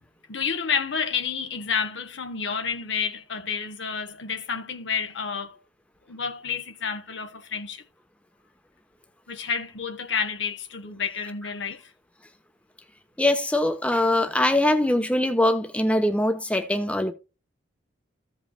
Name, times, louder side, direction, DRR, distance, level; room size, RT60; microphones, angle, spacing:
voice 1, 0.3-5.6 6.1-7.8 9.3-11.9, left 6 dB, 70° left, 1.0 m, -30 dB
voice 2, 13.2-17.1, left 1 dB, 5° left, 0.9 m, -22 dB
15.0 x 5.3 x 2.2 m
head